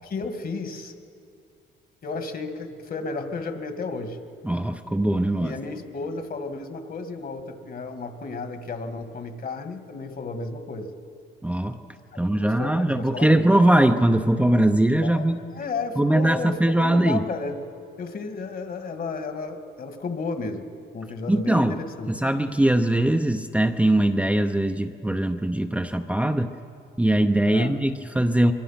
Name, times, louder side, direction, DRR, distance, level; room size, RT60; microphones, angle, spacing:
voice 1, 0.0-0.9 2.0-4.2 5.4-10.9 12.4-13.5 15.0-17.6 18.0-20.7 20.9-22.1 27.5-27.8, left 3 dB, 50° left, 7 dB, 2.1 m, -33 dB
voice 2, 4.4-5.6 11.4-11.8 12.2-15.4 16.0-17.2 21.3-21.8 22.1-26.5 27.0-28.5, right 1 dB, 5° right, 5 dB, 0.8 m, -21 dB
23.5 x 22.5 x 5.8 m, 2.5 s
cardioid pair, 90°, 20 cm